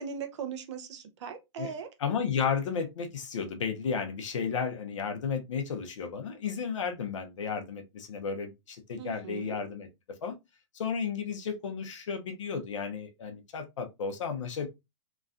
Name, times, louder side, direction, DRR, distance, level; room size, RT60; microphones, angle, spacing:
voice 1, 0.0-1.9 9.0-9.6, right 6 dB, 70° right, 0.7 m, -39 dB
voice 2, 2.0-9.9 10.2-10.3 10.7-14.7, left 6 dB, 85° left, 0.7 m, -33 dB
3.0 x 2.3 x 2.5 m
hypercardioid pair, 135°, 16 cm